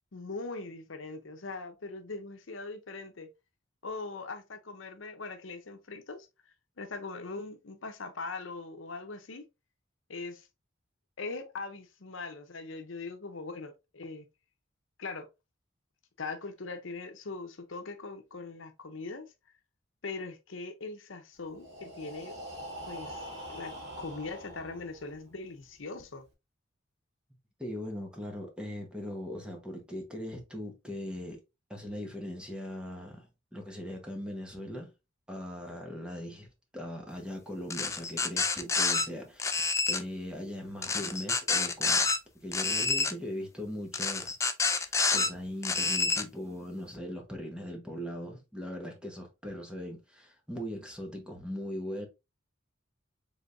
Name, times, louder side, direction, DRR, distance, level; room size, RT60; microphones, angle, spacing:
voice 1, 0.1-3.3 3.8-6.3 6.8-9.5 10.1-10.5 11.2-14.3 15.0-15.3 16.2-19.3 20.0-22.4 22.9-26.3, left 3 dB, 70° left, 0.8 m, -41 dB
Breathing, 21.5-25.3, equal, 60° right, 1.9 m, -44 dB
voice 2, 27.6-31.4 31.7-34.9 35.3-36.5 36.7-39.6 39.9-42.1 42.4-44.3 44.7-52.1, equal, 5° right, 1.1 m, -40 dB
sound 1, 37.7-39.0 39.4-40.0 40.8-42.2 42.5-43.1 43.9-45.3 45.6-46.2, left 4 dB, 15° left, 0.4 m, -28 dB
4.9 x 3.6 x 2.6 m
head